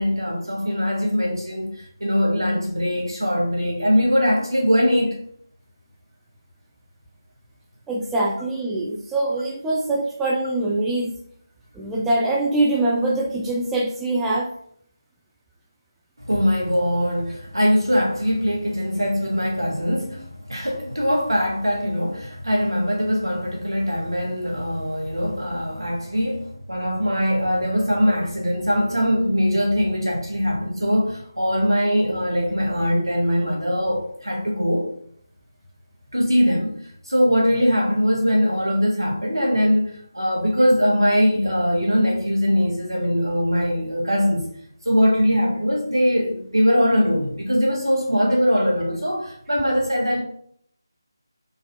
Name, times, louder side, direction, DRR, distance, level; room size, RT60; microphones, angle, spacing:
voice 1, 0.0-5.2 8.1-8.2 16.2-34.9 36.1-36.8 37.1-44.5 44.8-50.2, equal, 75° right, 1.4 m, -21 dB
voice 2, 7.9-11.1 11.7-14.5, right 2 dB, 5° right, 0.3 m, -23 dB
3.9 x 2.5 x 4.2 m
figure-of-eight pair, 160°, 2 cm